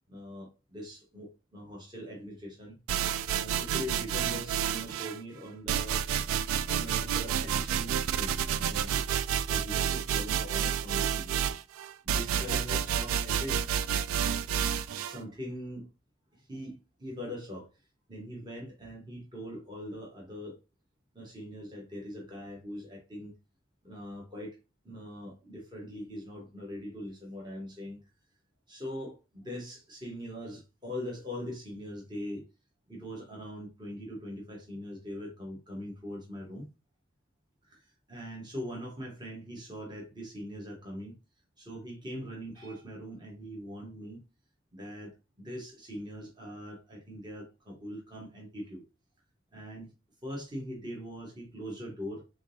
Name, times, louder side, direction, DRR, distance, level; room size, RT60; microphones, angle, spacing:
voice 1, 0.1-2.8 3.3-6.0 6.7-9.0 9.5-11.5 12.0-13.7 15.0-15.9 16.3-17.8 18.1-20.6 21.1-23.3 23.8-24.6 24.8-28.0 28.7-32.4 32.9-36.7 37.6-41.2 41.6-44.2 44.7-48.8 49.5-49.9 50.2-52.2, equal, 20° right, 1.1 m, -42 dB
sound 1, 2.9-5.2 5.7-15.2, right 8 dB, 80° right, 0.3 m, -30 dB
3.8 x 3.6 x 2.6 m
head